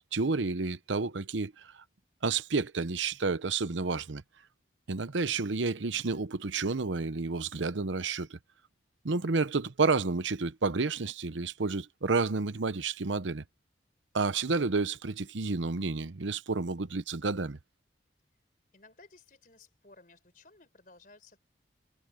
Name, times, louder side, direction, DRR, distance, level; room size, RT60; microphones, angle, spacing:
voice 1, 0.1-1.7 2.2-4.2 4.9-8.4 9.0-13.4 14.1-17.6, right 4 dB, 90° right, 0.8 m, -30 dB
voice 2, 18.7-21.4, left 3 dB, 45° left, 4.2 m, -57 dB
head